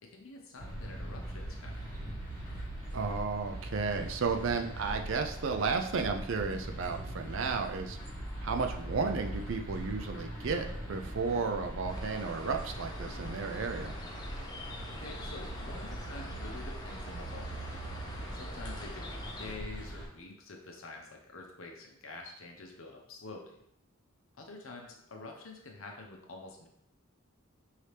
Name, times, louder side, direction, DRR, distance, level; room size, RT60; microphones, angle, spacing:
voice 1, 0.0-1.9 14.9-17.9 18.3-23.6 24.4-26.7, left 3 dB, 70° left, 1 dB, 0.8 m, -47 dB
sound 1, 0.6-20.1, right 1 dB, 10° right, 1.4 m, -41 dB
voice 2, 2.9-8.0 8.4-13.9, right 4 dB, 60° right, 5 dB, 0.4 m, -33 dB
sound 2, 11.9-19.6, left 1 dB, 20° left, 0.5 m, -46 dB
4.8 x 2.8 x 3.3 m, 0.73 s
head